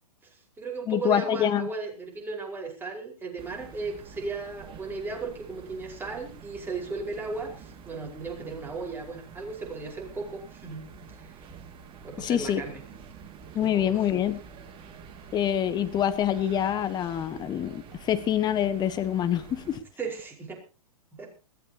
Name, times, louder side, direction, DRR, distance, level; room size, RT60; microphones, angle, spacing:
voice 1, 0.2-11.4 12.0-12.8 13.6-14.1 20.0-20.6 21.1-21.3, right 4 dB, 10° right, 5.1 m, -36 dB
voice 2, 0.9-1.7 12.2-12.6 13.5-14.4 15.3-19.8, left 10 dB, 20° left, 1.4 m, -26 dB
sound 1, 3.4-19.8, right 6 dB, 25° right, 2.4 m, -47 dB
21.5 x 16.0 x 3.0 m
figure-of-eight pair, 115°, 19 cm